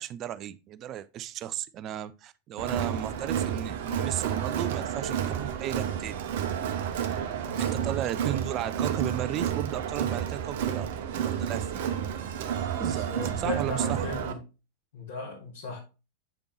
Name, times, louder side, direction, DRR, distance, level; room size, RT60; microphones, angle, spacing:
voice 1, 0.0-6.3 7.6-11.8 12.7-13.0 13.4-14.1, right 12 dB, 35° right, 0.5 m, -35 dB
Crowd, 2.6-14.3, right 9 dB, 55° right, 0.9 m, -30 dB
voice 2, 7.5-7.9 12.8-14.4 14.9-15.8, left 4 dB, 60° left, 2.6 m, -37 dB
8.2 x 5.2 x 3.0 m
figure-of-eight pair, 90°, 0 cm